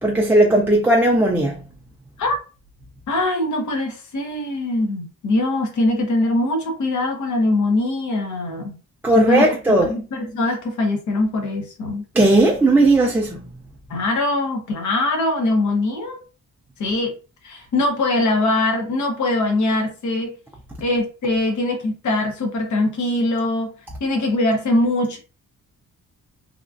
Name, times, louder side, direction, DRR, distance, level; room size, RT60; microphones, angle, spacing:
voice 1, 0.0-1.6 9.0-9.9 12.2-13.4, right 1 dB, 5° right, 0.3 m, -16 dB
voice 2, 3.1-8.8 9.1-9.5 9.8-12.0 13.9-16.2 16.8-17.2 17.4-20.3 20.8-23.7 24.0-25.2, left 2 dB, 60° left, 0.9 m, -22 dB
2.9 x 2.4 x 2.4 m
wide cardioid pair, 145°, 32 cm